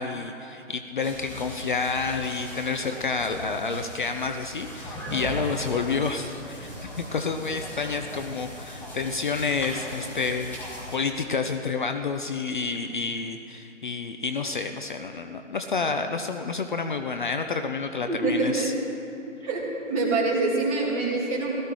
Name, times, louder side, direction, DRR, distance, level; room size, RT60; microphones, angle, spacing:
voice 1, 0.0-18.7, left 4 dB, 40° left, 7 dB, 0.6 m, -29 dB
sound 1, 1.0-11.0, equal, 5° left, 1.7 m, -38 dB
voice 2, 18.1-18.7 19.4-19.6 19.9-21.6, right 3 dB, 30° right, -4 dB, 2.9 m, -25 dB
17.0 x 13.0 x 4.7 m, 2.7 s
figure-of-eight pair, 145°, 38 cm